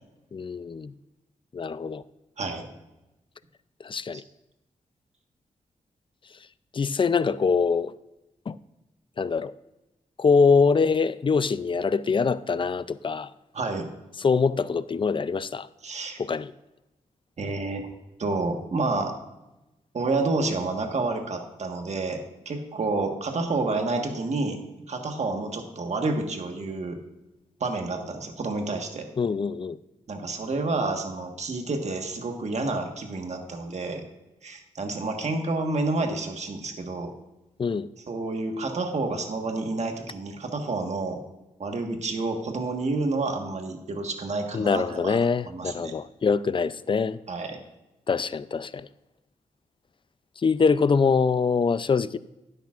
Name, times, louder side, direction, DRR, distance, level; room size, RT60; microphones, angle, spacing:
voice 1, 0.3-0.9 1.5-2.0 3.8-4.2 6.7-7.9 8.5-8.6 9.2-9.5 10.2-13.3 14.2-15.7 16.2-16.5 29.2-29.8 37.6-37.9 44.5-47.2 48.1-48.9 50.4-52.2, left 5 dB, 40° left, 0.4 m, -24 dB
voice 2, 2.4-2.7 4.1-4.2 13.5-13.9 15.8-16.2 17.4-17.9 18.2-19.1 19.9-22.2 22.4-24.6 24.9-27.0 27.6-29.1 30.1-34.0 34.4-37.1 38.1-41.2 41.6-45.2 45.4-46.0 47.3-47.6, right 3 dB, 60° right, 1.5 m, -29 dB
12.0 x 10.5 x 2.5 m
wide cardioid pair, 90°, 13 cm